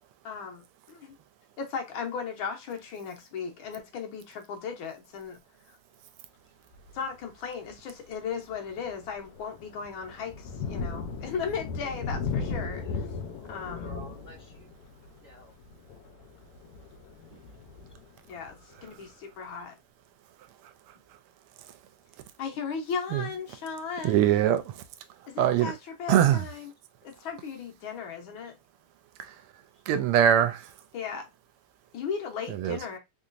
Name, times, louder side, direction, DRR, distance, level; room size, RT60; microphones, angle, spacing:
voice 1, 0.2-1.1 1.6-5.4 5.7-5.8 6.9-13.1 13.5-14.0 18.3-19.7 22.4-24.3 25.3-26.6 27.0-28.5 30.9-31.3 31.9-33.0, left 6 dB, 70° left, 1.4 m, -36 dB
Thunder, 6.7-7.1 7.6-7.8 8.2-18.8, left 4 dB, 90° left, 1.6 m, -37 dB
voice 2, 13.2-14.7 15.2-15.5 17.3-17.6 29.7-29.8, right 1 dB, 35° right, 0.7 m, -51 dB
voice 3, 24.0-24.8 25.4-25.7 26.1-26.5 29.2-29.4 29.9-30.7 32.5-32.8, right 10 dB, 85° right, 1.5 m, -23 dB
3.7 x 2.9 x 2.5 m
omnidirectional pair, 2.4 m